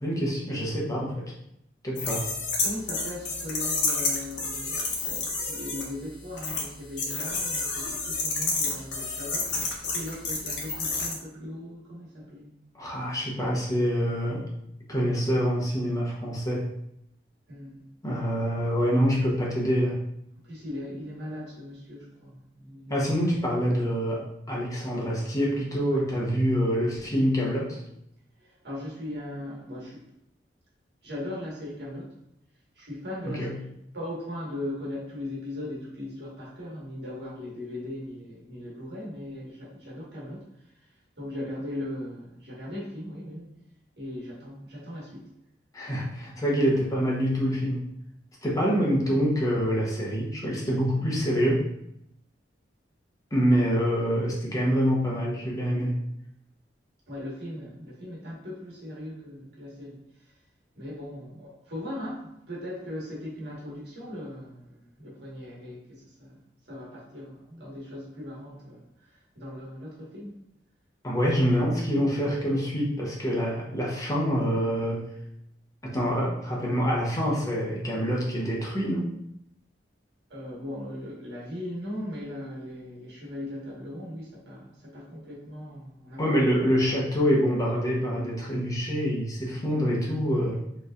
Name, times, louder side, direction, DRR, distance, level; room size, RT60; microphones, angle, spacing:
voice 1, 0.0-1.3 1.8-2.3 12.7-14.5 14.9-16.6 18.0-20.0 22.9-27.8 33.2-33.5 45.7-47.8 48.4-51.6 53.3-56.0 71.0-75.0 75.8-79.1 86.2-90.6, equal, 20° left, -3 dB, 0.9 m, -26 dB
sound 1, 2.0-5.8 6.4-6.6 7.0-11.1, left 3 dB, 85° left, 1.1 m, -29 dB
voice 2, 2.6-12.5 17.5-17.9 20.4-23.1 25.9-26.0 28.4-30.1 31.0-32.1 32.7-33.5 33.9-40.5 41.2-43.5 44.0-45.2 57.1-60.0 60.7-66.4 66.7-70.3 80.3-86.2, left 1 dB, 65° right, -6 dB, 1.6 m, -38 dB
5.0 x 3.2 x 2.5 m, 0.78 s
head